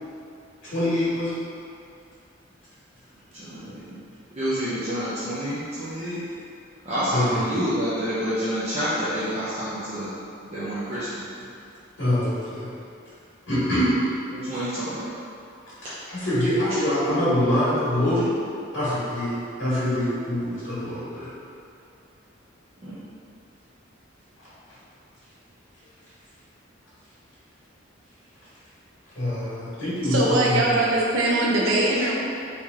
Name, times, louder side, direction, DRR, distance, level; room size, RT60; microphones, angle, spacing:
voice 1, 0.6-1.4 7.1-7.3 12.0-12.7 13.5-14.1 16.1-18.4 18.7-21.3 29.1-30.8, left 1 dB, 75° left, -12 dB, 1.3 m, -24 dB
voice 2, 3.3-4.0 4.3-6.2 6.8-10.1 10.5-11.3 14.3-15.1 16.7-16.8 22.8-23.0, equal, 30° right, -12 dB, 0.6 m, -28 dB
voice 3, 30.1-32.2, right 2 dB, 90° right, -4 dB, 0.7 m, -21 dB
3.3 x 2.9 x 3.5 m, 2.5 s
head